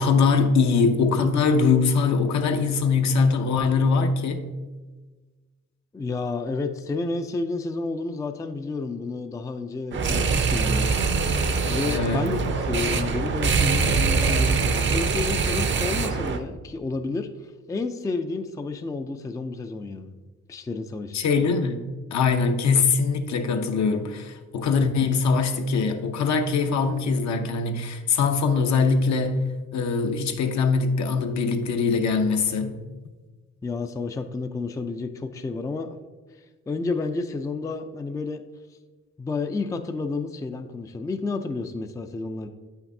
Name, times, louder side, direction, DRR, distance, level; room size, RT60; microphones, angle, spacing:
voice 1, 0.0-4.6 11.9-12.3 21.1-32.8, left 4 dB, 65° left, 6 dB, 0.8 m, -22 dB
voice 2, 5.9-11.1 11.7-17.3 17.7-20.1 20.5-21.2 33.6-35.9 36.7-38.4 39.2-42.5, left 3 dB, 10° left, 7 dB, 0.4 m, -30 dB
sound 1, 9.9-16.4, right 4 dB, 40° right, 0.6 m, -23 dB
8.2 x 5.9 x 2.7 m, 1.3 s
cardioid pair, 90°, 30 cm